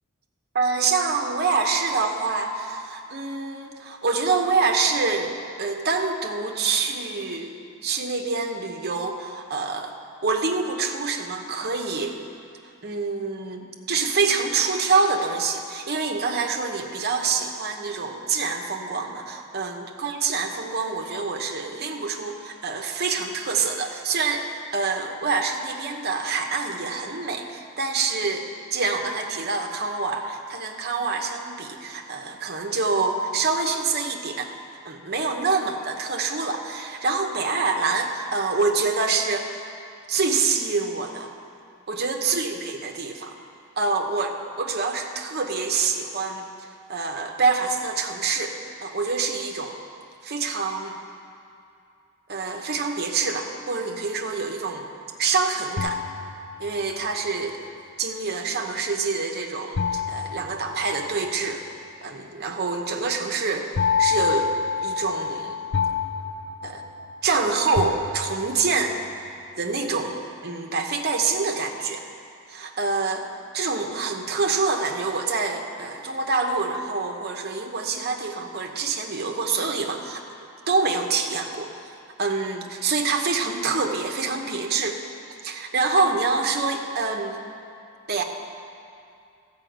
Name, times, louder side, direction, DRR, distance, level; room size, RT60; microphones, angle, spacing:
voice 1, 0.5-5.3 5.6-10.0 10.2-12.2 12.8-24.4 24.7-34.5 34.8-39.6 40.1-41.3 41.9-43.4 43.8-48.6 48.8-49.8 50.2-51.0 52.3-54.9 55.2-56.0 56.6-57.6 58.0-61.6 62.0-63.7 64.0-64.5 64.8-65.6 66.6-66.8 67.2-69.0 69.6-72.1 72.5-73.3 73.5-80.2 80.7-81.7 82.2-85.0 85.4-87.4 88.1-88.2, right 4 dB, 50° right, 3 dB, 1.0 m, -26 dB
sound 1, 55.8-57.0 59.8-61.4 63.8-67.3 67.8-68.7, left 6 dB, 55° left, 0.5 m, -27 dB
14.0 x 5.6 x 7.9 m, 2.5 s
head